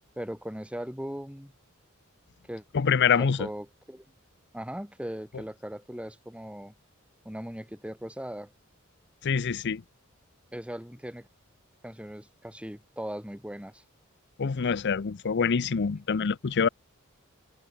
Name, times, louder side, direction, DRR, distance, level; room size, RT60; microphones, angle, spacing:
voice 1, 0.1-1.5 2.5-2.6 3.1-4.0 4.5-6.7 7.2-8.5 10.5-11.3 11.8-13.8, equal, 5° right, 3.4 m, -39 dB
voice 2, 2.7-3.5 9.2-9.8 14.4-16.7, left 6 dB, 55° left, 0.6 m, -25 dB
head